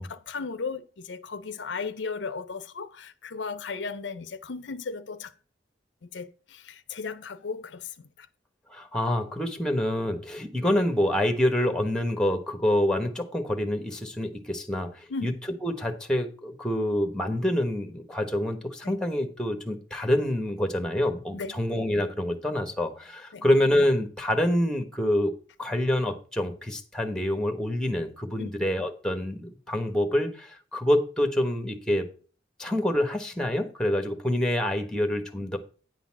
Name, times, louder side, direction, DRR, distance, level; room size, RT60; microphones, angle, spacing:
voice 1, 0.0-5.3 6.0-8.3 15.1-15.3 18.8-19.0 21.3-21.6 23.3-23.4 28.4-28.5, left 4 dB, 65° left, 0.5 m, -36 dB
voice 2, 8.7-15.3 15.6-25.3 25.6-32.1 32.6-35.6, left 1 dB, 5° left, 1.1 m, -26 dB
9.6 x 3.9 x 7.3 m
head